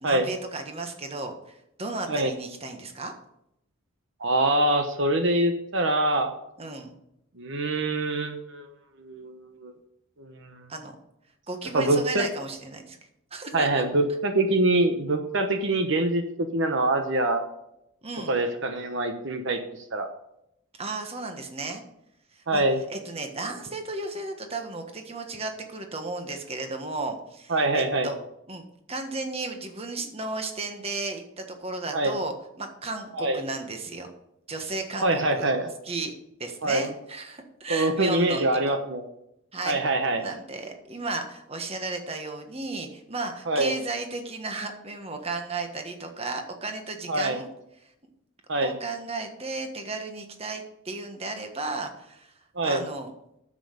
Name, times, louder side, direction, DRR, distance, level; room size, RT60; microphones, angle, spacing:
voice 1, 0.0-3.1 6.6-6.9 10.7-10.9 11.5-13.0 13.3-13.8 18.0-18.4 20.8-21.8 22.3-22.6 22.9-28.2 28.5-34.1 34.5-35.5 35.8-36.1 36.4-38.5 39.5-39.8 40.2-47.5 47.8-47.9 48.6-52.4 52.6-53.1, right 3 dB, 30° right, 5 dB, 1.4 m, -34 dB
voice 2, 4.2-6.3 7.4-8.7 9.0-9.7 10.2-10.6 11.7-12.3 13.5-17.5 18.3-19.6 19.9-20.1 22.5-22.8 27.5-28.1 31.9-32.2 33.2-33.4 35.0-35.7 36.6-36.9 37.7-39.0 39.6-40.2 43.5-43.7 47.1-47.4 48.5-48.7 52.6-52.8, right 2 dB, 60° right, 6 dB, 1.0 m, -24 dB
9.8 x 7.6 x 6.7 m, 0.80 s
head